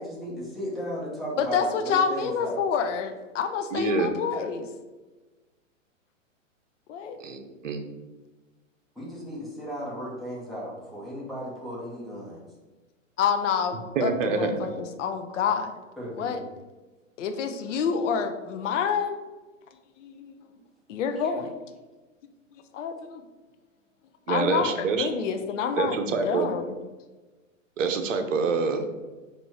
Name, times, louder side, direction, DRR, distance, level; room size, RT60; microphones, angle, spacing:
voice 1, 0.0-2.6 8.9-12.4 16.0-16.4 21.2-21.3, equal, ahead, -7 dB, 1.2 m, -35 dB
voice 2, 1.4-4.7 6.9-7.2 13.2-15.7 16.2-16.4 17.2-19.2 20.0-20.4 20.9-21.6 22.7-23.2 24.3-26.8, left 6 dB, 65° left, 7 dB, 0.6 m, -28 dB
voice 3, 3.7-4.1 7.2-7.8 14.0-14.7 24.3-25.1 25.8-26.5 27.8-28.9, right 4 dB, 70° right, 6 dB, 0.8 m, -26 dB
4.2 x 2.6 x 4.6 m, 1.2 s
hypercardioid pair, 120°, 40 cm